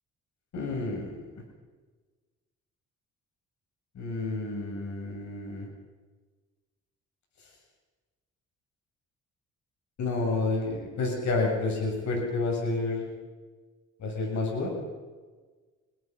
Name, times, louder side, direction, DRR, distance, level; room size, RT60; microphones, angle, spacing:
voice 1, 0.5-1.2 3.9-5.7 10.0-13.1 14.0-14.8, left 3 dB, 65° left, 0 dB, 7.3 m, -29 dB
27.0 x 22.0 x 5.4 m, 1.4 s
cardioid pair, 90°, 30 cm